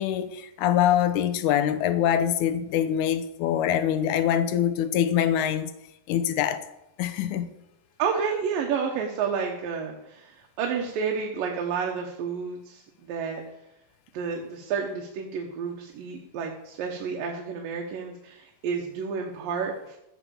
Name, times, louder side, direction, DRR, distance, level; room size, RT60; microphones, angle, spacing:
voice 1, 0.0-5.7 6.1-6.7 7.0-7.5, left 10 dB, 75° left, 2.2 m, -24 dB
voice 2, 8.0-13.4 14.1-20.0, right 6 dB, 85° right, 3.0 m, -30 dB
15.0 x 7.4 x 7.0 m
omnidirectional pair, 3.9 m